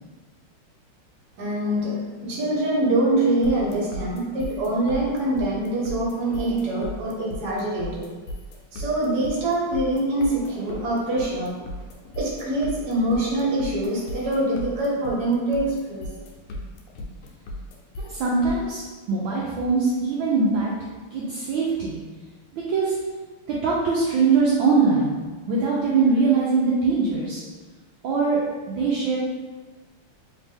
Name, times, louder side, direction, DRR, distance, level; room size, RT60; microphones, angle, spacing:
voice 1, 1.4-8.1 8.7-11.6 12.2-16.1, right 1 dB, 55° right, -4 dB, 1.4 m, -24 dB
sound 1, 3.4-18.7, left 1 dB, 85° left, 1.6 m, -36 dB
voice 2, 18.0-20.7 21.1-22.0 22.5-23.0 23.5-25.1 25.5-27.4 28.0-28.4 28.7-29.2, right 4 dB, 75° right, -6 dB, 1.3 m, -22 dB
3.5 x 3.2 x 3.4 m, 1.3 s
omnidirectional pair, 2.4 m